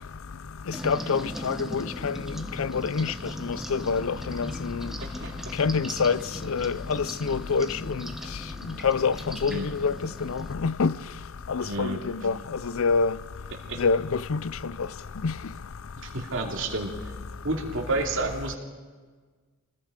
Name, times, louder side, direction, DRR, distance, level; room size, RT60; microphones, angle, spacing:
sound 1, 0.7-10.5, equal, ahead, 0.9 m, -39 dB
voice 1, 0.8-2.2 2.6-3.1 3.4-4.9 5.6-6.2 6.5-8.1 8.8-9.9 10.2-10.9 11.5-12.4 12.6-13.1 13.8-14.0 14.3-14.4 15.2-15.3, left 5 dB, 65° left, 0.5 m, -26 dB
voice 2, 11.6-12.0 13.7-13.8 16.0-16.9 17.4-18.6, right 2 dB, 60° right, 2.8 m, -29 dB
25.5 x 20.0 x 5.2 m
head